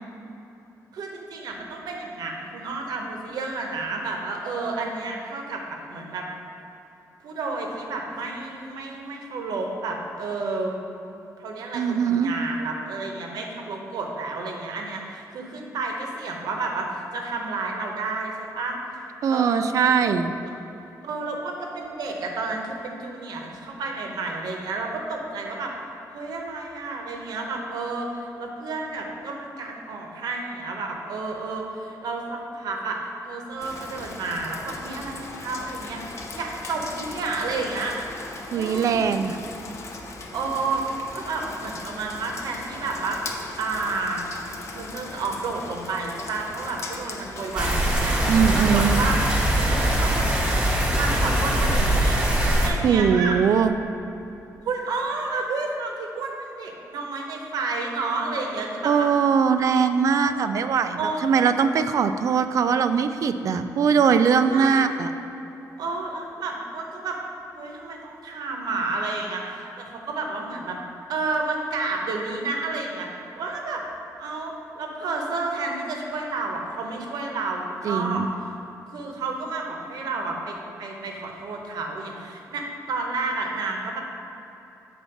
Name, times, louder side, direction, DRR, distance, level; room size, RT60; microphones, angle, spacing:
voice 1, 0.9-6.3 7.2-10.8 11.4-18.8 19.3-19.7 20.0-20.1 20.4-20.5 21.0-25.7 26.1-38.0 38.5-39.0 40.3-40.8 41.1-43.2 43.6-44.2 44.7-49.2 49.7-50.3 50.9-52.2 52.6-53.4 54.6-59.1 60.2-60.5 61.0-61.2 64.5-64.8 65.8-67.2 67.5-70.8 71.1-73.1 73.4-73.8 74.2-78.5 78.9-84.0, right 3 dB, 80° right, 1 dB, 0.9 m, -31 dB
voice 2, 11.7-12.3 19.2-20.3 38.5-39.4 48.3-49.0 52.8-53.7 58.8-65.1 77.8-78.3, right 6 dB, 55° right, 9 dB, 0.3 m, -21 dB
Rain, 33.6-49.4, left 3 dB, 45° left, 0.6 m, -38 dB
sound 1, 47.6-52.7, right 1 dB, 15° right, 1.0 m, -22 dB
7.0 x 4.1 x 5.8 m, 3.0 s
wide cardioid pair, 165°, 7 cm